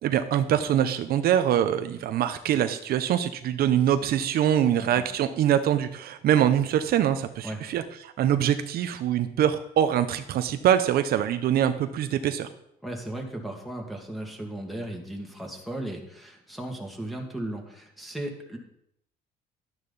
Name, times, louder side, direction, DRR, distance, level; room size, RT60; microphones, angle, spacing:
voice 1, 0.0-12.5, right 10 dB, 65° right, 10 dB, 0.7 m, -24 dB
voice 2, 12.8-18.6, right 1 dB, ahead, 0 dB, 2.3 m, -36 dB
12.0 x 9.6 x 4.1 m, 0.74 s
cardioid pair, 110°, 17 cm